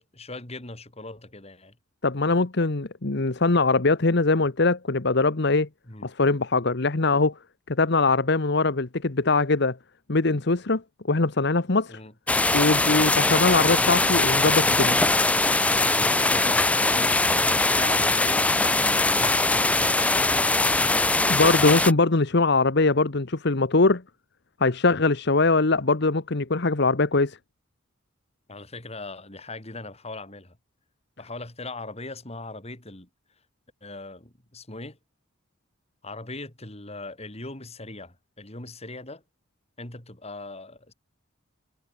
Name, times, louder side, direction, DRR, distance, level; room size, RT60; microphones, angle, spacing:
voice 1, 0.0-1.8 5.9-6.1 11.9-12.1 15.9-17.2 17.7-18.5 18.9-20.3 28.5-30.6 31.2-33.1 33.8-35.0 36.0-39.2 39.8-40.9, left 2 dB, 35° left, 4.2 m, -40 dB
voice 2, 2.0-5.7 6.0-7.3 7.7-9.8 10.1-10.8 11.1-12.0 12.5-15.0 21.3-24.0 24.6-27.4, left 3 dB, 60° left, 1.2 m, -22 dB
sound 1, 12.3-21.9, left 2 dB, 5° left, 0.3 m, -21 dB
head